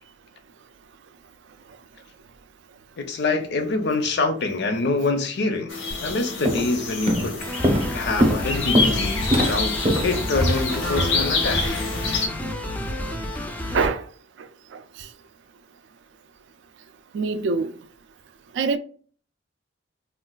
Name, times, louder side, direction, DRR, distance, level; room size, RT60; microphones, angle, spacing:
voice 1, 3.0-5.7 6.0-7.4 7.9-11.6, left 3 dB, 65° left, 0.6 m, -25 dB
sound 1, 5.7-12.3, left 4 dB, 85° left, 0.8 m, -28 dB
Walk footsteps, 5.9-6.1 6.5-6.8 7.1-11.7, equal, 30° right, 0.7 m, -23 dB
sound 2, 7.4-13.9, left 1 dB, 10° left, 0.4 m, -30 dB
voice 2, 13.7-14.1 14.4-14.5 14.7-15.1 17.1-17.7 18.5-18.8, right 4 dB, 65° right, 0.3 m, -24 dB
3.7 x 2.3 x 2.3 m
head